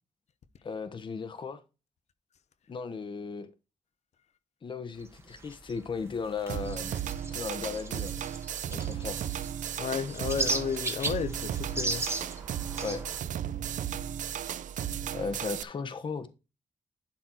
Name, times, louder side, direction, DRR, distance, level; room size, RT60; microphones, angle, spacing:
voice 1, 0.6-1.6 2.7-3.5 4.6-6.9 7.3-8.1 8.7-9.2 12.8-13.0 15.1-16.3, left 5 dB, 40° left, 1.1 m, -36 dB
sound 1, 5.0-13.2, right 2 dB, 20° right, 1.3 m, -37 dB
sound 2, 6.5-15.6, right 10 dB, 90° right, 0.5 m, -35 dB
voice 2, 9.8-12.0, left 7 dB, 60° left, 0.9 m, -32 dB
11.5 x 4.2 x 4.5 m
wide cardioid pair, 160°, 13 cm